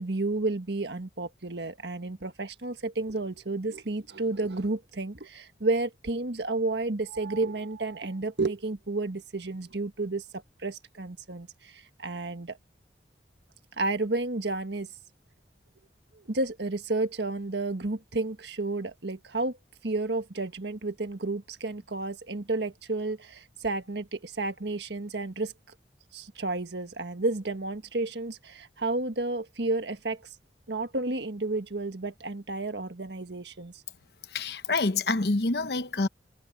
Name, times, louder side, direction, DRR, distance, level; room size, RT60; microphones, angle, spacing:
voice 1, 0.0-12.6 13.8-14.9 16.1-19.6 19.8-25.5 26.1-30.2 30.7-33.7, right 2 dB, 75° right, 1.5 m, -31 dB
voice 2, 34.3-36.1, left 3 dB, 65° left, 0.9 m, -27 dB
head